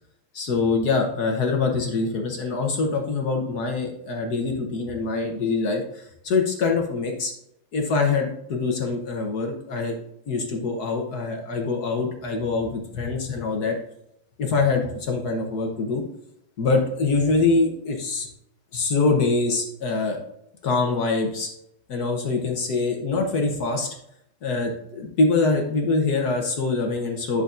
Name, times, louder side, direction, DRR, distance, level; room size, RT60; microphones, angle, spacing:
voice 1, 0.3-7.3 7.7-10.0 10.3-13.8 14.4-16.0 16.6-18.3 18.7-20.2 20.6-21.5 21.9-23.9 24.4-27.4, left 3 dB, 55° left, 2 dB, 1.2 m, -24 dB
8.8 x 6.8 x 2.5 m, 0.76 s
omnidirectional pair, 2.4 m